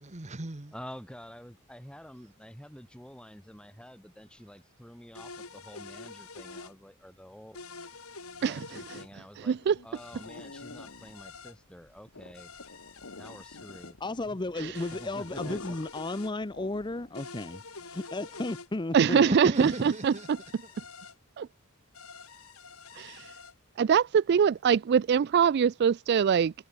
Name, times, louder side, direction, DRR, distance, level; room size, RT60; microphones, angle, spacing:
voice 1, 0.0-0.7 19.1-20.3 20.6-20.7, right 1 dB, 30° right, 1.2 m, -34 dB
voice 2, 0.7-7.6 8.3-9.6 9.8-12.5 13.1-14.0 14.3-15.6, equal, 5° left, 4.5 m, -48 dB
sound 1, 5.1-6.7 7.5-9.1 9.9-11.5 12.3-13.9 14.7-16.3 17.1-18.7 19.5-21.1 21.9-23.5, left 4 dB, 90° left, 7.7 m, -46 dB
voice 3, 9.4-9.8 14.6-14.7 18.9-19.7 20.0-20.1 21.4-21.5 23.0-23.3 23.8-26.5, right 7 dB, 50° right, 0.3 m, -23 dB
sound 2, 9.5-17.3, left 2 dB, 65° left, 1.8 m, -48 dB
voice 4, 14.0-19.3, left 2 dB, 20° left, 0.6 m, -34 dB
head